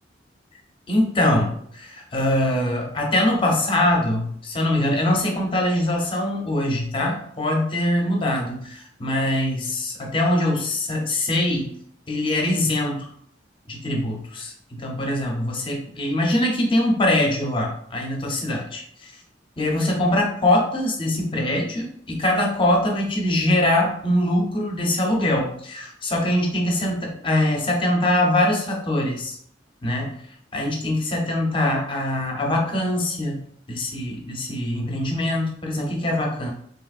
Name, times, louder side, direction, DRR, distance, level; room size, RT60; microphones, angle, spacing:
voice 1, 0.9-11.7 12.1-13.1 13.7-19.1 19.6-29.4 29.8-30.2 30.5-33.4 33.7-36.5, left 1 dB, 25° left, 0 dB, 0.6 m, -23 dB
3.3 x 2.9 x 2.4 m, 0.66 s
head